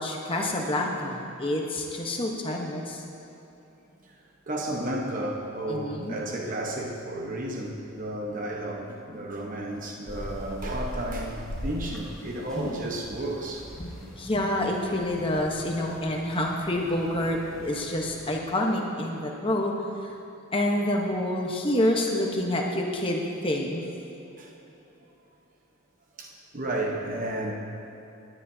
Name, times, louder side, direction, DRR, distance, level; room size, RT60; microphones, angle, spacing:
voice 1, 0.0-3.0 5.7-6.2 12.5-12.8 13.8-19.7 20.5-23.9, left 1 dB, 25° left, 0 dB, 1.1 m, -28 dB
voice 2, 4.0-13.8 24.4-24.6 26.2-27.5, right 1 dB, 40° right, -1 dB, 1.1 m, -33 dB
sound 1, 10.1-18.4, equal, 5° left, 2.1 m, -41 dB
18.5 x 10.0 x 2.8 m, 3.0 s
head